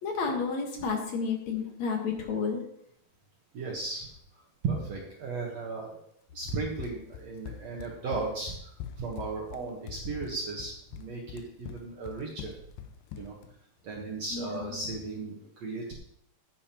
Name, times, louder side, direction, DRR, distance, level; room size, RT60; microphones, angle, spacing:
voice 1, 0.0-2.6 14.3-14.8, left 5 dB, 60° left, 1 dB, 2.4 m, -31 dB
voice 2, 3.5-4.1 4.6-6.0 6.3-8.5 9.0-12.5 13.2-13.4 13.8-15.9, right 3 dB, 60° right, -1 dB, 2.1 m, -35 dB
Run, 6.5-13.5, left 9 dB, 85° left, 2.2 m, -43 dB
15.0 x 8.6 x 2.9 m, 0.72 s
omnidirectional pair, 4.1 m